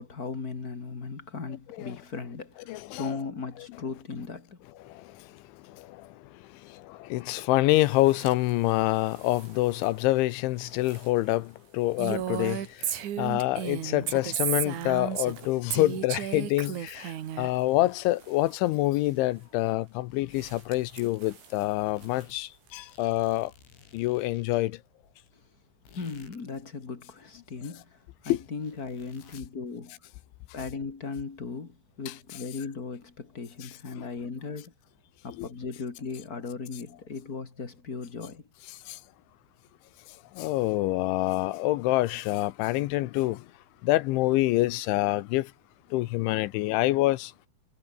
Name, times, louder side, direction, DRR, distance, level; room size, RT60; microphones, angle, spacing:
voice 1, 0.0-4.6 25.3-25.4 25.9-29.9 30.5-34.7 35.2-38.4, left 4 dB, 35° left, 1.5 m, -37 dB
voice 2, 2.7-3.1 4.8-23.5 23.9-24.8 28.3-28.4 33.6-33.7 34.0-34.1 35.4-35.5 38.9-39.0 40.1-43.5 43.8-45.5 45.9-47.3, left 18 dB, 80° left, 2.9 m, -27 dB
sound 1, 7.7-23.0, right 6 dB, 85° right, 10.0 m, -57 dB
Female speech woman speaking, 12.0-15.4 15.7-17.5, right 11 dB, 70° right, 1.9 m, -32 dB
sound 2, 14.6-15.7 16.0-17.2 17.5-19.6 20.1-21.2 21.6-26.6 27.0-29.6, left 6 dB, 65° left, 8.3 m, -58 dB
omnidirectional pair, 5.9 m